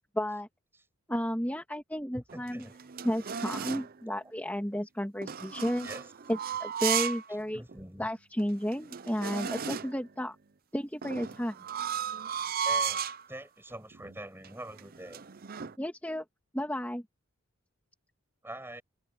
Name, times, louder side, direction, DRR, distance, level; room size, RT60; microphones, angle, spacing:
voice 1, 0.1-0.5 1.1-2.7 3.0-5.9 6.3-7.6 8.0-10.4 10.7-11.6 15.8-16.2 16.5-17.0, equal, 5° left, 2.5 m, -32 dB
voice 2, 2.1-2.8 5.8-6.1 7.5-8.1 12.6-15.3 18.4-18.8, right 1 dB, 10° right, 7.8 m, -44 dB
sound 1, 2.3-3.9 5.2-7.3 7.7-7.8 8.4-8.5 8.7-10.0 11.0-13.3 13.9-14.2 14.4-15.8, right 7 dB, 40° right, 0.6 m, -34 dB
head